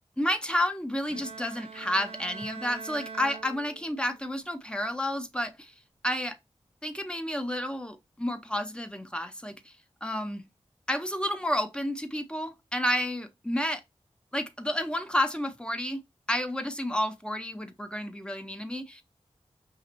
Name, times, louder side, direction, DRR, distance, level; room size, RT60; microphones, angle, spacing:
voice 1, 0.2-5.7 6.0-6.4 6.8-9.7 10.0-10.4 10.9-13.8 14.3-16.0 16.3-19.0, left 1 dB, 10° left, 0.6 m, -30 dB
Bowed string instrument, 1.1-4.2, right 5 dB, 60° right, 0.4 m, -43 dB
5.1 x 2.8 x 2.5 m
wide cardioid pair, 60°, 11 cm